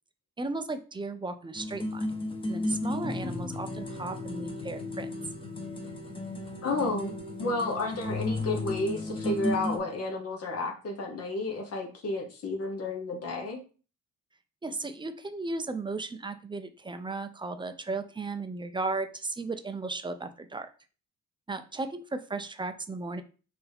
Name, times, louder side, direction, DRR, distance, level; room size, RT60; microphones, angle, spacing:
voice 1, 0.4-2.1 2.5-5.1 14.6-20.7 21.5-23.2, right 3 dB, 15° right, 8 dB, 0.5 m, -35 dB
sound 1, 1.5-9.8, left 2 dB, 15° left, 1.0 m, -34 dB
voice 2, 6.6-7.1 7.4-13.6, left 2 dB, 55° left, 0 dB, 1.2 m, -31 dB
4.4 x 2.7 x 3.5 m, 0.36 s
cardioid pair, 90°, 30 cm